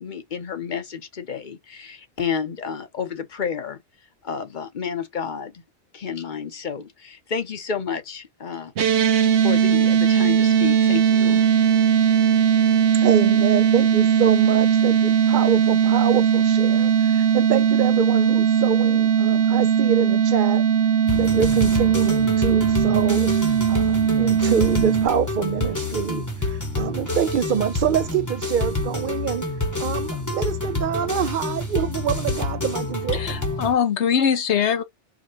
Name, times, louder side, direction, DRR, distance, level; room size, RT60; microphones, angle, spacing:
voice 1, 0.0-3.8 4.2-5.6 5.9-8.7 9.0-11.5, left 6 dB, 45° left, 1.0 m, -31 dB
sound 1, 8.8-25.1, right 8 dB, 80° right, 1.1 m, -19 dB
voice 2, 13.0-20.6 21.1-23.3 23.7-29.4 29.8-33.4, right 8 dB, 60° right, 0.6 m, -26 dB
sound 2, 21.1-33.7, left 2 dB, 15° left, 1.0 m, -28 dB
voice 3, 33.1-34.8, left 7 dB, 80° left, 1.1 m, -22 dB
4.9 x 2.3 x 2.8 m
omnidirectional pair, 1.2 m